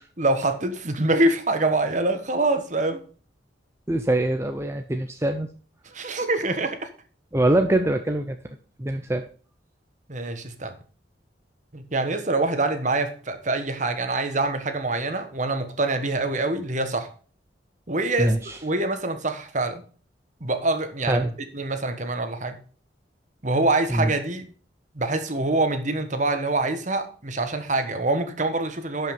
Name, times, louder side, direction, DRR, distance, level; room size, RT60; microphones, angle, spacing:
voice 1, 0.2-3.0 5.8-6.9 10.1-10.7 11.7-17.1 17.9-18.3 18.6-19.8 20.4-21.3 21.5-22.6 23.4-24.5 24.9-29.1, right 2 dB, 40° right, 1.4 m, -25 dB
voice 2, 3.9-5.5 7.3-9.2 18.2-18.6 21.1-21.3 23.9-24.1, right 1 dB, 15° right, 0.6 m, -24 dB
11.5 x 5.6 x 5.3 m
head